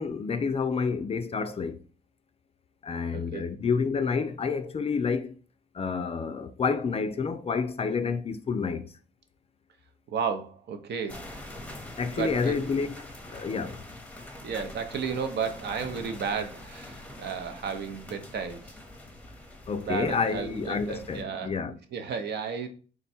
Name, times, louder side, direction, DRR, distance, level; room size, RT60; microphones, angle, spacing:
voice 1, 0.0-1.8 2.8-5.3 5.7-8.9 12.0-13.8 19.7-21.8, left 5 dB, 30° left, 0.3 m, -29 dB
voice 2, 3.1-3.4 10.1-11.2 12.1-12.6 14.4-18.8 19.8-21.5 21.9-22.7, right 6 dB, 60° right, 0.6 m, -33 dB
sound 1, 11.1-21.2, left 1 dB, 5° left, 0.8 m, -44 dB
3.4 x 2.2 x 4.2 m
cardioid pair, 90°, 20 cm